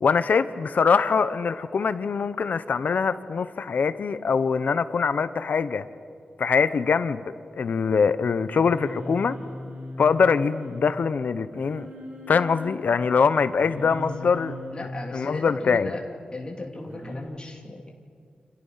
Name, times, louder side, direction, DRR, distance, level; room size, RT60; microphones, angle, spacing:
voice 1, 0.0-5.9 6.4-9.4 10.0-11.9 12.3-14.5 15.1-15.9, left 5 dB, 65° left, 13 dB, 0.9 m, -23 dB
Singing, 8.4-10.9 11.5-12.7 13.6-14.9 16.9-17.2, equal, 70° right, 7.2 m, -39 dB
voice 2, 14.7-16.0 16.3-17.9, left 2 dB, 30° left, 0 dB, 2.9 m, -36 dB
29.5 x 27.0 x 5.8 m, 2.3 s
wide cardioid pair, 150°, 3 cm